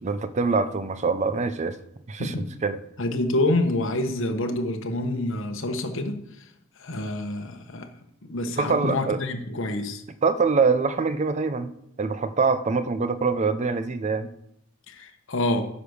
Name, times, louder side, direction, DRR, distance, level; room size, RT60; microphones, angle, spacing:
voice 1, 0.0-1.8 2.1-2.4 2.6-2.8 8.6-9.2 10.2-11.7 12.0-14.3, right 4 dB, 35° right, 0.5 m, -24 dB
voice 2, 3.0-6.5 6.8-7.9 8.3-10.0 14.9-15.6, left 1 dB, 65° left, 1.1 m, -27 dB
9.9 x 5.1 x 6.4 m
head